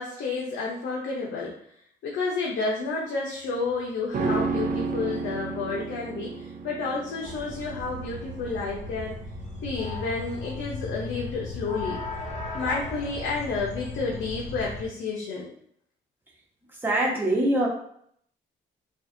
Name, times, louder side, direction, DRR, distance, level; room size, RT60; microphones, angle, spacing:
voice 1, 0.0-1.6 2.0-9.2 9.6-12.0 12.5-15.5, left 4 dB, 70° left, -3 dB, 0.9 m, -30 dB
sound 1, 4.1-13.5 13.8-13.9, right 4 dB, 45° right, 0.6 m, -33 dB
sound 2, 7.2-14.9, left 3 dB, 35° left, 0.9 m, -36 dB
voice 2, 16.8-17.7, right 1 dB, 10° right, -4 dB, 1.3 m, -23 dB
5.3 x 2.5 x 2.7 m, 0.67 s
cardioid pair, 90°, 20 cm